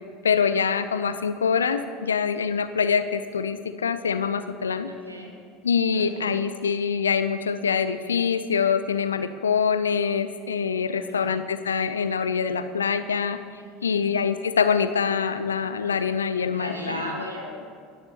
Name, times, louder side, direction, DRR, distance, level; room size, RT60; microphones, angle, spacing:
voice 1, 0.2-4.9 5.6-13.4 13.8-17.0, left 6 dB, 75° left, 11 dB, 0.4 m, -24 dB
voice 2, 4.9-5.3 5.9-6.3 10.9-11.3 13.6-14.1 16.5-17.7, equal, 90° right, 0 dB, 1.4 m, -36 dB
17.0 x 6.7 x 2.9 m, 2.1 s
figure-of-eight pair, 70°, 0 cm